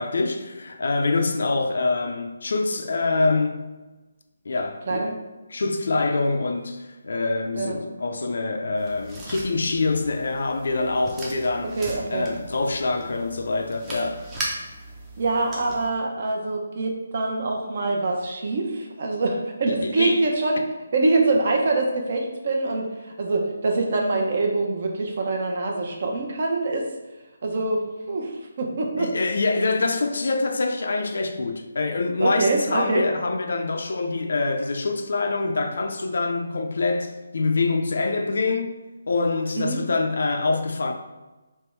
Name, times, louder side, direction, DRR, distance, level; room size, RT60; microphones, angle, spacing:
voice 1, 0.0-3.6 4.5-5.1 5.5-11.8 12.1-14.2 19.7-20.2 29.0-38.8 39.1-40.9, left 3 dB, 65° left, 0.5 m, -25 dB
sound 1, 8.7-15.9, right 1 dB, 10° right, 0.6 m, -38 dB
voice 2, 11.8-12.3 15.2-20.6 20.9-26.8 27.4-29.1 32.2-33.0 39.5-39.8, right 2 dB, 45° right, 0.7 m, -24 dB
3.5 x 3.1 x 4.4 m
hypercardioid pair, 170°, 0 cm